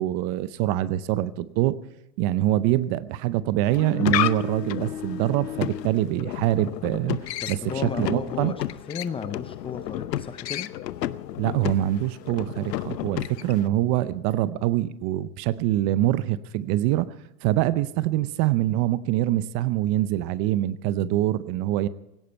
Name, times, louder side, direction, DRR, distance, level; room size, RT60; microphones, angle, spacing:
voice 1, 0.0-1.8 2.2-7.2 7.5-8.5 11.4-17.1 17.4-21.9, right 14 dB, 35° right, 16 dB, 0.7 m, -24 dB
sound 1, 3.6-13.7, left 13 dB, 85° left, 0.9 m, -31 dB
voice 2, 7.4-10.7, left 6 dB, 10° left, 10 dB, 0.5 m, -34 dB
17.5 x 17.0 x 4.4 m, 0.91 s
hypercardioid pair, 130°, 49 cm